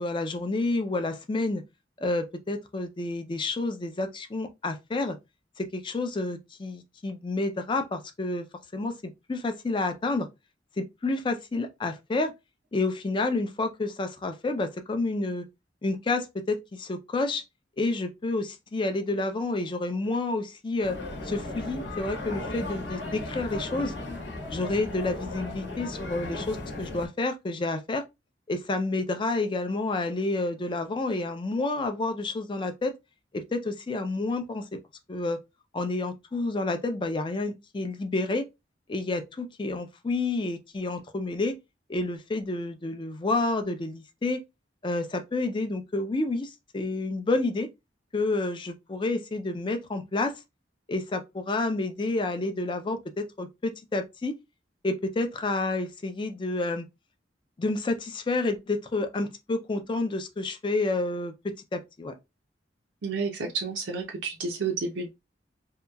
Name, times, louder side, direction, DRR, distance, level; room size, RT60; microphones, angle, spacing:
voice 1, 0.0-1.6 2.0-5.2 5.6-8.5 8.7-10.3 10.8-12.3 12.7-15.5 15.8-17.4 17.8-21.0 21.2-23.9 24.5-28.0 28.5-32.9 33.3-34.7 35.1-35.4 35.7-38.5 38.9-41.6 41.9-44.4 44.8-47.7 48.1-50.4 50.9-54.3 54.8-56.9 57.6-62.1, left 2 dB, 25° left, 0.4 m, -29 dB
sound 1, 20.8-27.1, left 2 dB, 75° left, 0.9 m, -36 dB
voice 2, 63.0-65.1, right 4 dB, 85° right, 0.5 m, -30 dB
2.8 x 2.3 x 2.2 m
head